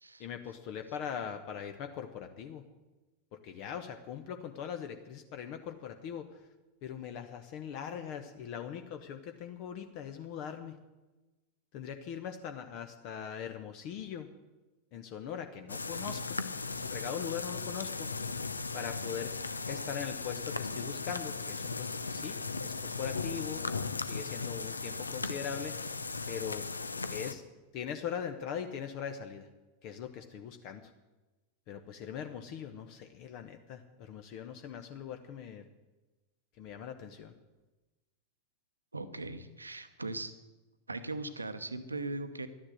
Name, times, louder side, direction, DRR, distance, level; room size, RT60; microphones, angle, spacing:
voice 1, 0.2-2.6 3.3-6.3 6.8-10.8 11.7-14.3 14.9-16.4 16.9-18.4 18.7-19.4 19.7-22.4 22.6-23.6 24.0-26.0 26.3-26.7 27.1-27.4 27.7-29.5 29.8-30.9 31.7-35.6 36.6-37.3, left 8 dB, 45° left, 7 dB, 0.9 m, -41 dB
sound 1, 15.7-27.3, left 4 dB, 80° left, 0.6 m, -37 dB
voice 2, 38.9-40.3 40.9-42.5, right 2 dB, 80° right, 10 dB, 0.9 m, -39 dB
12.0 x 10.0 x 7.7 m, 1.1 s
figure-of-eight pair, 90°, 0 cm